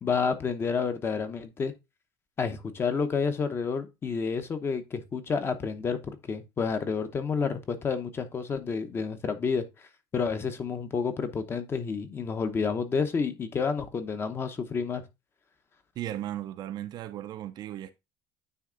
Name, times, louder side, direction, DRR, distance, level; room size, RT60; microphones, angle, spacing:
voice 1, 0.0-1.7 2.4-9.6 10.1-15.0, left 5 dB, 20° left, 0.8 m, -29 dB
voice 2, 16.0-17.9, right 12 dB, 40° right, 0.5 m, -36 dB
9.4 x 3.5 x 3.8 m
cardioid pair, 165°, 11 cm